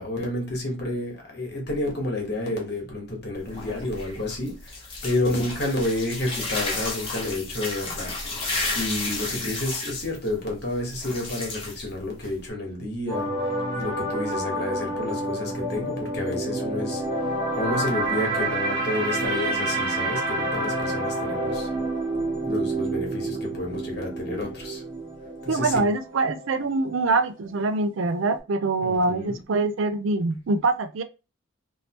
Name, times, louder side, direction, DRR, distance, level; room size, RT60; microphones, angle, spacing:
voice 1, 0.0-4.7 5.0-8.1 8.7-13.3 13.7-17.0 17.5-21.7 22.4-24.8 25.4-25.9 28.8-29.4, left 1 dB, 55° left, 1.3 m, -30 dB
sound 1, 3.3-12.5, left 3 dB, 25° left, 0.9 m, -32 dB
sound 2, 13.1-27.2 27.5-27.8, right 2 dB, 40° right, 1.3 m, -29 dB
voice 2, 25.5-31.0, right 3 dB, 80° right, 0.5 m, -24 dB
3.3 x 2.7 x 2.9 m
head